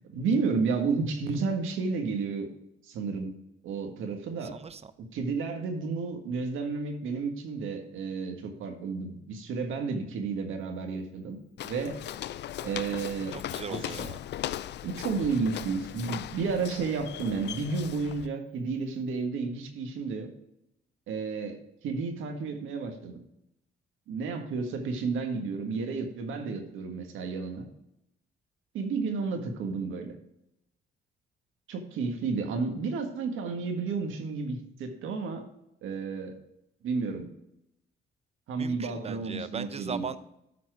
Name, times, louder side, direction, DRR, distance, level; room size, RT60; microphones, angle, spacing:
voice 1, 0.0-2.5 2.9-3.3 3.6-4.6 5.0-12.0 12.6-13.3 13.7-13.8 14.8-20.3 21.1-21.6 21.8-23.2 24.1-27.7 28.7-30.2 31.7-35.4 35.8-36.3 36.8-37.3 38.5-40.1, right 4 dB, 85° right, 4 dB, 1.6 m, -32 dB
voice 2, 4.4-4.9 13.3-14.2 38.5-40.2, right 6 dB, 30° right, 13 dB, 0.7 m, -38 dB
Walk footsteps, 11.6-18.3, left 12 dB, 60° left, 0.4 m, -38 dB
12.5 x 4.3 x 4.7 m, 0.82 s
cardioid pair, 90°, 20 cm